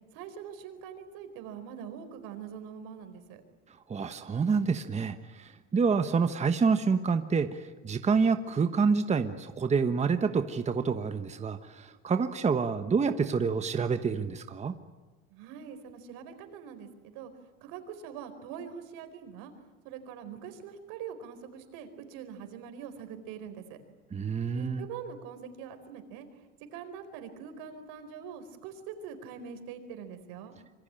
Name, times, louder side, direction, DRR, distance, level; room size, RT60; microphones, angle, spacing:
voice 1, 0.1-3.4 15.3-17.3 17.6-19.5 19.8-23.8 24.5-26.3 26.7-30.6, right 7 dB, 75° right, 9 dB, 4.5 m, -43 dB
voice 2, 3.9-14.7 24.1-24.9, right 5 dB, 20° right, 8 dB, 1.2 m, -28 dB
26.5 x 24.5 x 8.9 m, 1.3 s
cardioid pair, 130°, 35 cm